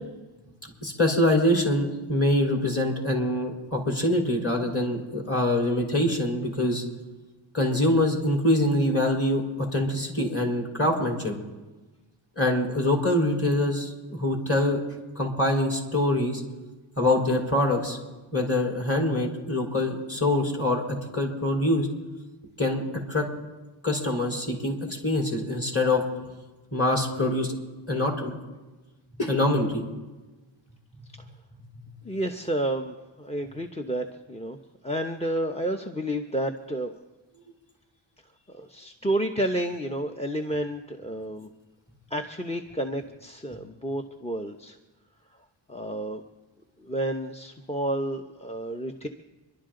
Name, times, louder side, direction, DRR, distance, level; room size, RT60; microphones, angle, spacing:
voice 1, 0.8-6.8 7.5-11.4 12.4-14.8 15.2-16.4 17.0-18.0 18.3-21.9 22.6-22.8 23.1-23.3 23.8-26.0 26.7-27.6 27.9-28.3 29.2-29.8, left 1 dB, 30° left, -1 dB, 4.1 m, -24 dB
voice 2, 32.0-34.6 34.8-36.9 38.5-41.5 42.1-44.8 45.7-46.2 46.8-49.1, right 1 dB, 15° left, 5 dB, 0.9 m, -30 dB
27.5 x 11.5 x 3.8 m, 1.2 s
cardioid pair, 55°, 49 cm